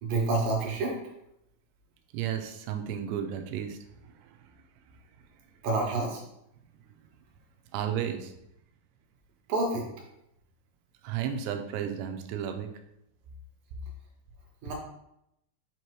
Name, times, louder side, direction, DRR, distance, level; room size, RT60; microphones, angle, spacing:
voice 1, 0.0-0.9 5.6-6.2 9.5-9.9 14.6-14.7, right 2 dB, 65° right, -1 dB, 2.4 m, -28 dB
voice 2, 2.1-3.8 4.1-4.4 7.7-8.3 11.0-12.7, right 9 dB, 90° right, 6 dB, 2.8 m, -33 dB
7.5 x 2.9 x 4.6 m, 0.81 s
omnidirectional pair, 4.8 m